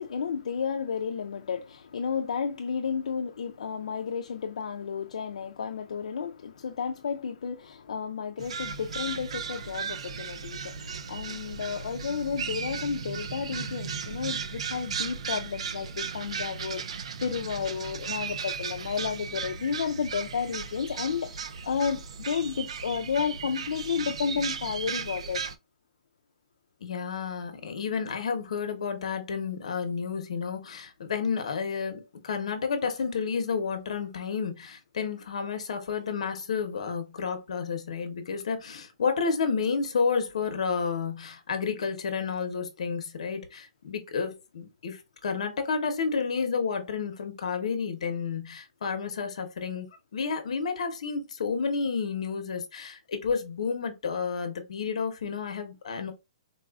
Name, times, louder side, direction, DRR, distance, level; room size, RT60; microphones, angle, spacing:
voice 1, 0.0-25.5, left 6 dB, 80° left, 0.4 m, -32 dB
sound 1, 8.4-25.6, right 6 dB, 60° right, 0.3 m, -36 dB
voice 2, 26.8-49.9 50.1-56.1, left 5 dB, 60° left, 0.8 m, -31 dB
4.0 x 2.4 x 2.3 m
hypercardioid pair, 180°, 4 cm